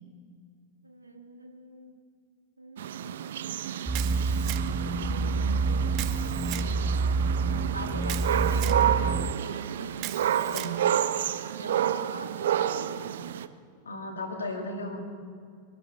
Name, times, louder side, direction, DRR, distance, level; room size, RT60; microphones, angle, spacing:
voice 1, 0.8-1.9 2.6-4.8 7.4-10.0 11.6-13.3, right 3 dB, 80° right, 4 dB, 1.8 m, -43 dB
sound 1, 2.8-13.5, right 10 dB, 60° right, 0.6 m, -30 dB
sound 2, 3.9-9.3, right 4 dB, 15° right, 0.5 m, -28 dB
Camera, 3.9-4.9 5.9-6.7 8.0-8.8 10.0-10.8, right 15 dB, 40° right, 0.9 m, -38 dB
voice 2, 13.8-15.0, left 1 dB, 75° left, 4 dB, 2.4 m, -35 dB
23.0 x 12.0 x 5.2 m, 2.3 s
figure-of-eight pair, 90°, 0 cm